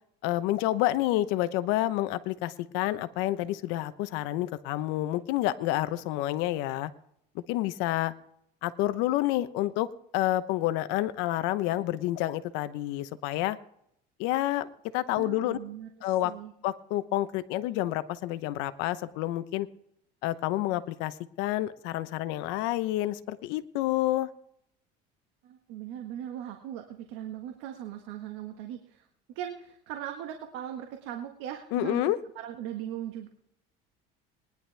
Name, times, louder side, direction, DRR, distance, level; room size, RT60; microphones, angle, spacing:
voice 1, 0.2-6.9 7.3-8.1 8.6-9.9 10.1-13.6 14.2-14.7 14.9-15.6 16.0-16.3 16.6-19.7 20.2-24.3 31.7-32.2, left 15 dB, 80° left, 13 dB, 0.9 m, -29 dB
voice 2, 15.2-16.5 25.4-33.3, right 10 dB, 75° right, 4 dB, 1.6 m, -39 dB
20.0 x 11.0 x 3.4 m, 0.73 s
cardioid pair, 125°, 19 cm